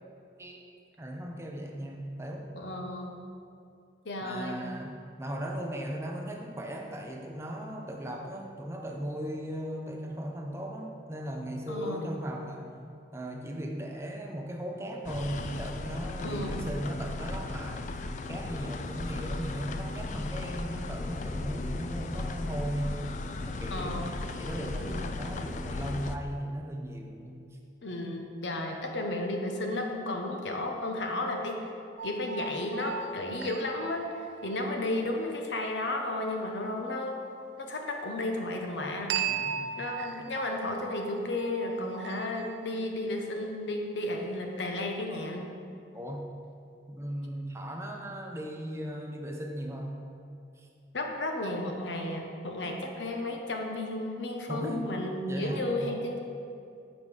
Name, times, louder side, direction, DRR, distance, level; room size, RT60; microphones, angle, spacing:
voice 1, 1.0-2.5 4.2-12.7 13.1-17.8 18.3-23.0 23.5-24.1 24.4-27.5 39.2-39.8 45.9-46.3 46.9-50.1 50.6-50.7 54.5-54.9 55.2-55.8, equal, 15° right, 1 dB, 0.6 m, -37 dB
voice 2, 2.6-3.2 4.0-4.6 11.7-12.0 16.2-16.6 23.7-24.1 27.8-31.7 32.0-37.1 37.6-39.3 39.8-45.5 50.9-56.2, left 1 dB, 90° left, 2 dB, 1.0 m, -33 dB
sound 1, 15.0-26.2, left 2 dB, 40° left, 0.3 m, -36 dB
sound 2, 32.0-34.8 39.1-42.7, right 7 dB, 85° right, 0.4 m, -37 dB
7.2 x 5.2 x 4.8 m, 2.5 s
head